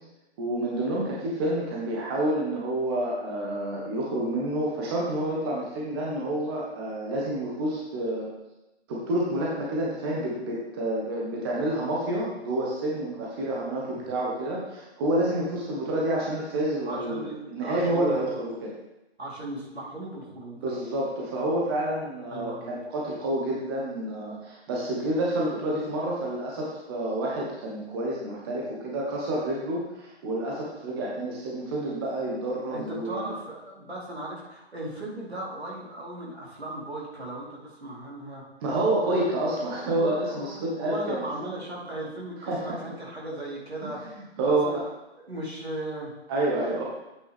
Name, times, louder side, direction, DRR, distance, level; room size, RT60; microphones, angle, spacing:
voice 1, 0.4-8.3 8.9-18.7 20.6-33.3 38.6-41.2 42.5-42.8 43.8-43.9 44.4-44.7 46.3-46.8, right 1 dB, 20° right, -4 dB, 1.4 m, -28 dB
voice 2, 13.9-14.2 16.9-18.4 19.2-20.6 22.3-22.8 32.7-38.4 39.6-44.8 45.3-46.1, right 1 dB, 70° right, -5 dB, 3.9 m, -37 dB
9.8 x 8.8 x 3.5 m, 0.99 s
figure-of-eight pair, 140°, 33 cm